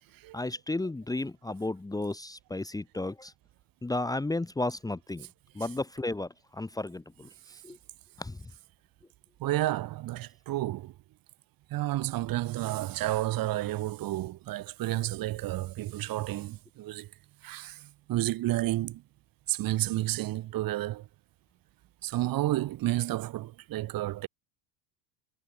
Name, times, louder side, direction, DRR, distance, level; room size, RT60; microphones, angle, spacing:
voice 1, 0.3-3.3 3.8-5.3 5.5-7.8 8.2-8.4, left 2 dB, 10° left, 1.7 m, -33 dB
voice 2, 9.4-10.9 11.7-17.1 17.4-19.0 19.5-21.1 22.0-24.3, right 15 dB, 55° right, 3.6 m, -31 dB
supercardioid pair, 115°, 42 cm